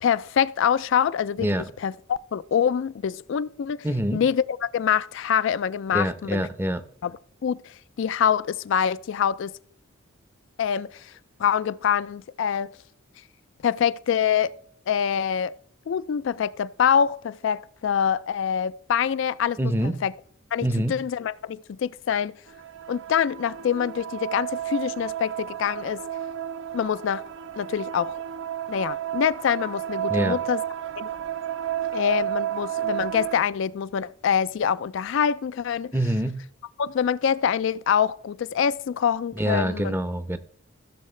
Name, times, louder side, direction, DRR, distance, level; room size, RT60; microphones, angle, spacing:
voice 1, 0.0-1.5 1.8-3.8 4.1-6.5 7.0-7.1 7.4-9.5 10.6-11.1 11.4-12.7 13.6-14.5 14.9-15.5 15.9-20.1 20.5-22.3 22.9-26.0 26.7-27.2 27.6-28.2 28.7-30.6 31.0-31.1 31.9-35.9 36.8-39.9, left 8 dB, 60° left, 0.3 m, -25 dB
voice 2, 3.8-4.2 5.9-6.8 19.6-20.0 20.6-21.0 30.1-30.4 35.9-36.4 39.4-40.4, equal, 10° right, 0.6 m, -25 dB
sound 1, 22.5-33.4, right 11 dB, 65° right, 0.5 m, -32 dB
16.0 x 6.5 x 3.2 m
head